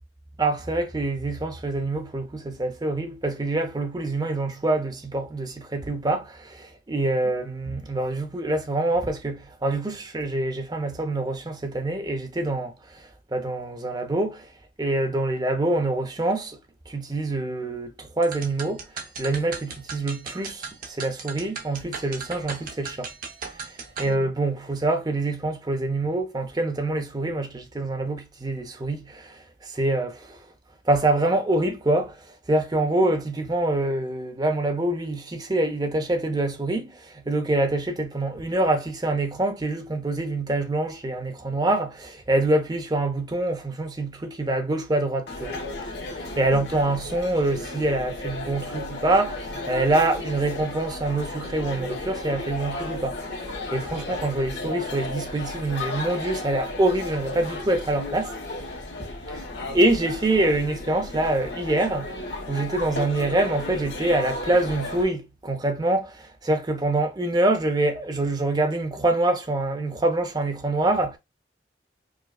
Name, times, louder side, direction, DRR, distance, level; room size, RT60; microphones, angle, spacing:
voice 1, 0.4-14.5 14.8-16.6 16.9-18.9 19.2-23.1 23.5-23.7 24.0-30.5 30.8-45.6 46.0-58.4 59.0-59.1 59.7-71.2, right 2 dB, 20° right, 0.6 m, -25 dB
sound 1, 18.2-24.1, right 5 dB, 50° right, 0.8 m, -37 dB
sound 2, 45.3-65.0, left 2 dB, 70° left, 1.1 m, -34 dB
4.9 x 2.2 x 2.3 m
head